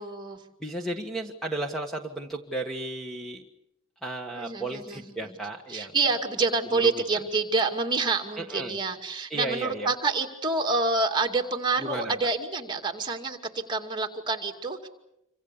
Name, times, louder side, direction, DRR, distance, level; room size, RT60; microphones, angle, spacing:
voice 1, 0.0-0.4 4.3-5.3 5.7-14.9, right 3 dB, 20° right, 4 dB, 2.4 m, -28 dB
voice 2, 0.6-3.4 4.0-5.9 6.8-6.9 8.4-8.8 9.3-9.9 11.8-12.1, right 2 dB, ahead, 3 dB, 1.5 m, -34 dB
27.5 x 25.0 x 7.0 m, 0.85 s
head